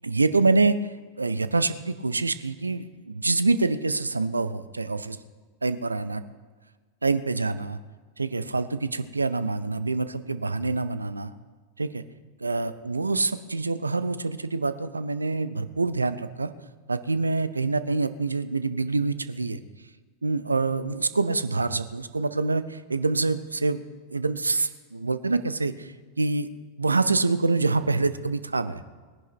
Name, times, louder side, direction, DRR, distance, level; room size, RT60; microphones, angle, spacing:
voice 1, 0.0-0.8 1.2-5.2 5.6-6.2 7.0-7.8 8.2-11.3 11.8-12.0 12.4-16.5 16.9-19.6 20.2-23.8 24.1-26.5 26.8-28.8, right 3 dB, 80° right, 13 dB, 0.6 m, -26 dB
18.0 x 10.5 x 4.6 m, 1.4 s
figure-of-eight pair, 90°, 0 cm